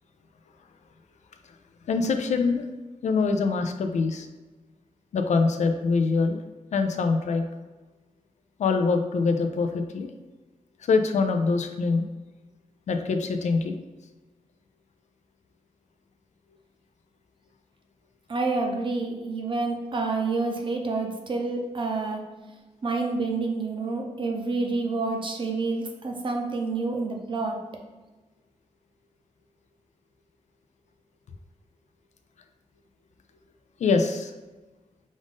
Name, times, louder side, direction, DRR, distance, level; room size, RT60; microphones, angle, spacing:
voice 1, 1.9-2.6 3.0-4.3 5.1-6.4 6.7-7.5 8.6-10.1 10.8-12.0 12.9-13.8 33.8-34.3, left 4 dB, 65° left, 6 dB, 0.4 m, -24 dB
voice 2, 18.3-22.2 22.8-27.6, right 3 dB, 40° right, 2 dB, 0.6 m, -28 dB
5.1 x 2.5 x 3.6 m, 1.2 s
wide cardioid pair, 150°, 13 cm